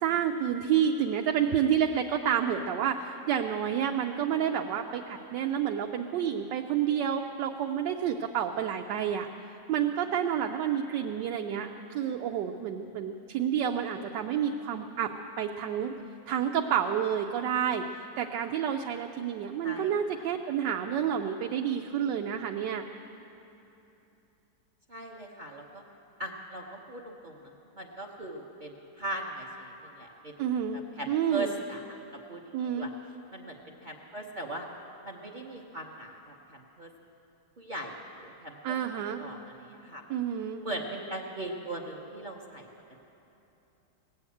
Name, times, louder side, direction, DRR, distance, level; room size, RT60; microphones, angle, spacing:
voice 1, 0.0-9.3 9.7-15.1 15.4-15.9 16.3-17.9 18.2-22.8 30.4-30.8 31.1-31.5 32.5-32.9 38.6-39.2 40.1-40.6, right 9 dB, 80° right, 3 dB, 1.2 m, -29 dB
voice 2, 19.6-20.2 24.9-25.8 26.2-30.3 30.7-32.0 32.3-32.4 32.8-32.9 33.3-34.7 35.0-36.9 37.6-40.0 40.6-42.7, right 2 dB, 40° right, 1 dB, 0.7 m, -39 dB
18.0 x 7.9 x 8.3 m, 2.9 s
omnidirectional pair, 1.9 m